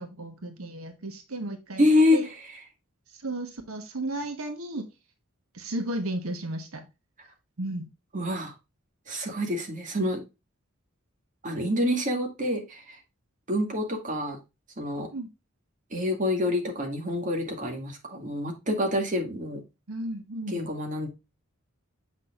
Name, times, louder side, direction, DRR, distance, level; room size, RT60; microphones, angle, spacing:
voice 1, 0.0-2.3 3.1-4.8 5.5-6.9 7.6-7.9 15.1-15.3 19.9-20.6, right 1 dB, 85° right, 7 dB, 1.2 m, -34 dB
voice 2, 1.8-2.4 8.1-8.5 9.1-10.2 11.4-13.0 13.5-14.4 14.8-15.1 15.9-19.6 20.5-21.1, left 1 dB, 40° right, 3 dB, 2.0 m, -27 dB
7.5 x 6.1 x 2.4 m, 0.25 s
head